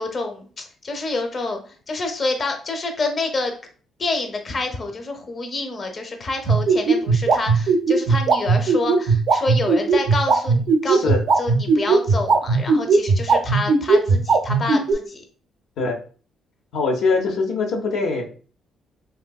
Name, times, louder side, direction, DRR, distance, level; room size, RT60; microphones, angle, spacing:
voice 1, 0.0-3.6 4.0-11.1 11.4-15.2, left 3 dB, 40° left, 5 dB, 0.6 m, -27 dB
sound 1, 6.5-14.9, right 4 dB, 65° right, 0.5 m, -16 dB
voice 2, 10.8-11.2 15.8-15.9 16.7-18.2, left 4 dB, 85° left, 1 dB, 0.6 m, -22 dB
3.7 x 2.6 x 2.2 m, 0.40 s
cardioid pair, 90°, 0 cm